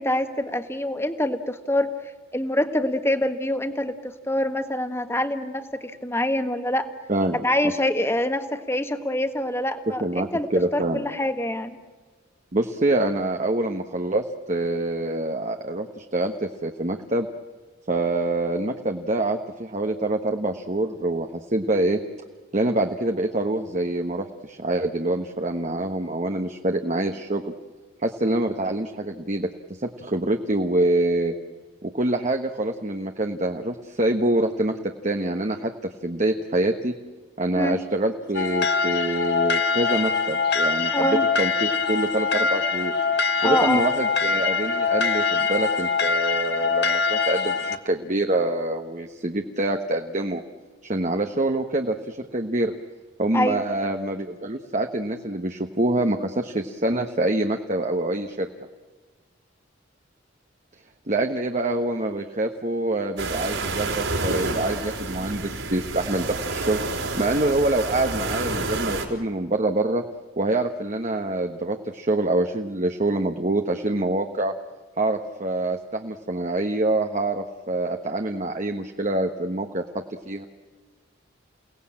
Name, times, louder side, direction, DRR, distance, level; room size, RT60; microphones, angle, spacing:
voice 1, 0.0-1.9 2.3-6.9 7.4-11.8 37.5-37.8 40.9-41.3 43.4-43.9 53.3-53.6, left 1 dB, 15° left, 8 dB, 1.5 m, -25 dB
voice 2, 7.1-7.5 10.0-11.0 12.5-17.3 17.9-22.0 22.5-27.5 28.0-29.5 29.8-31.3 31.8-34.7 35.0-35.7 36.0-36.9 37.4-42.9 43.4-50.4 50.8-52.7 53.2-58.5 61.1-66.8 67.2-70.0 70.4-74.5 75.0-79.8 80.2-80.4, right 2 dB, 40° right, 4 dB, 1.2 m, -25 dB
sound 1, 38.3-47.8, left 5 dB, 55° left, 1.4 m, -23 dB
sound 2, 63.2-69.1, right 3 dB, 70° right, 4.7 m, -29 dB
29.0 x 18.0 x 8.8 m, 1.4 s
head